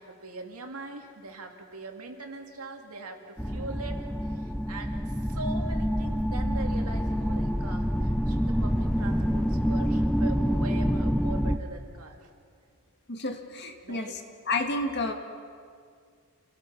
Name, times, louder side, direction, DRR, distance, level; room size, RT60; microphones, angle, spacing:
voice 1, 0.0-12.3 13.8-14.2, right 2 dB, 90° right, 3 dB, 2.2 m, -41 dB
sound 1, 3.4-11.6, equal, ahead, 0.6 m, -27 dB
voice 2, 13.1-14.2 14.5-15.1, left 2 dB, 50° left, 5 dB, 1.8 m, -30 dB
28.5 x 17.5 x 5.9 m, 2.1 s
head